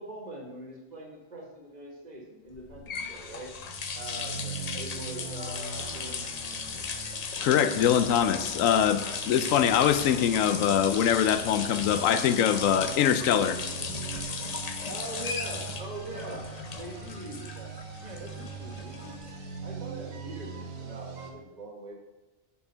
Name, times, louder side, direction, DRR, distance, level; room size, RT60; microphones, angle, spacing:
voice 1, 0.0-3.5 3.9-6.8 14.9-17.7 18.0-19.2 19.6-21.9, right 1 dB, 30° right, -1 dB, 1.8 m, -42 dB
sound 1, 2.5-19.6, left 5 dB, 45° left, 0.5 m, -36 dB
sound 2, 3.5-21.3, right 5 dB, 85° right, 1.4 m, -42 dB
voice 2, 7.4-13.6, left 9 dB, 80° left, 11 dB, 1.0 m, -23 dB
6.9 x 5.6 x 5.6 m, 1.1 s
omnidirectional pair, 1.4 m